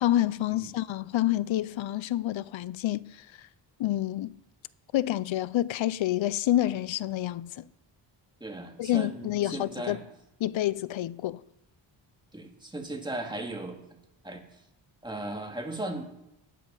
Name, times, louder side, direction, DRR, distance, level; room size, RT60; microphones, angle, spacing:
voice 1, 0.0-3.3 3.8-4.3 4.9-7.7 8.8-10.0 10.4-11.4, left 13 dB, 70° left, 0.6 m, -28 dB
voice 2, 8.4-10.0 12.3-13.8 14.2-14.6 15.0-16.0, right 1 dB, 10° right, 2.4 m, -37 dB
19.0 x 8.5 x 5.5 m
cardioid pair, 95°, 49 cm